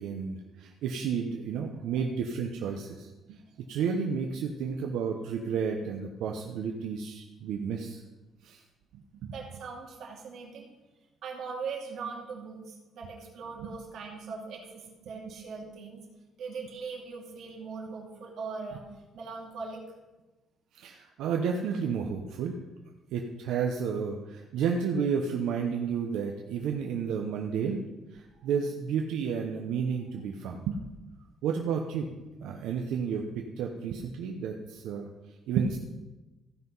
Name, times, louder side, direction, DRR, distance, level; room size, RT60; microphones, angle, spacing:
voice 1, 0.0-3.4 3.7-8.0 8.4-8.6 8.9-9.3 20.7-22.5 23.1-27.8 28.1-30.8 31.4-32.1 32.4-35.1 35.5-35.8, right 6 dB, 90° right, 2 dB, 0.9 m, -31 dB
voice 2, 9.3-10.7 11.2-16.0 16.4-18.8 19.1-19.8 28.3-28.5, right 5 dB, 60° right, -1 dB, 2.7 m, -40 dB
15.0 x 5.9 x 5.5 m, 1.1 s
cardioid pair, 145°, 0 cm